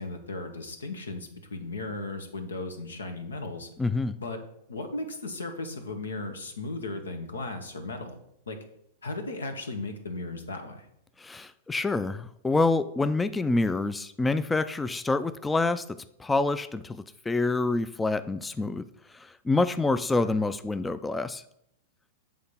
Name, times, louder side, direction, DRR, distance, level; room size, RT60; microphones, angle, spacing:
voice 1, 0.0-3.7 4.2-4.4 4.7-8.2 8.5-8.6 9.0-10.9 20.2-20.3, left 2 dB, 90° left, 6 dB, 1.1 m, -36 dB
voice 2, 3.8-4.2 11.2-15.8 16.2-18.9 19.1-21.4, left 3 dB, 10° left, 12 dB, 0.3 m, -27 dB
7.7 x 3.6 x 5.5 m, 0.75 s
hypercardioid pair, 110°, 0 cm